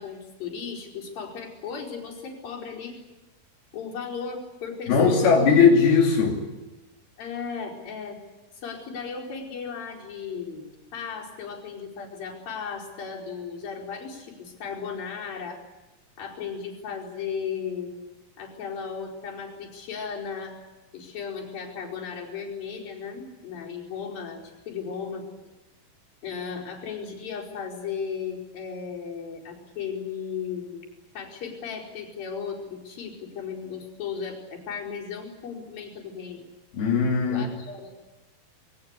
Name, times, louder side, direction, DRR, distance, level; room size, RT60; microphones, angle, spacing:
voice 1, 0.0-2.9 3.7-5.5 7.2-8.2 8.5-15.6 16.2-17.9 18.4-20.5 20.9-25.3 26.2-36.4 37.3-37.9, left 6 dB, 65° left, -2 dB, 6.5 m, -36 dB
voice 2, 4.9-6.5 36.8-37.4, left 5 dB, 90° left, -1 dB, 4.8 m, -19 dB
26.5 x 23.0 x 8.2 m, 1.1 s
omnidirectional pair, 4.3 m